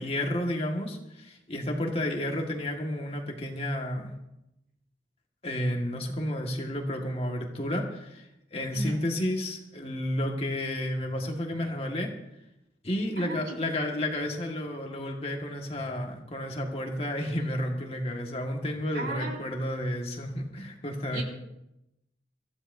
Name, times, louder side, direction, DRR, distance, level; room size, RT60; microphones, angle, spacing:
voice 1, 0.0-4.1 5.4-12.1 12.8-21.2, left 1 dB, 35° left, 2 dB, 1.7 m, -31 dB
voice 2, 8.7-9.0 13.2-13.6 18.9-19.4 21.1-21.2, right 2 dB, 60° right, 0 dB, 3.8 m, -35 dB
24.5 x 15.0 x 2.7 m, 0.88 s
head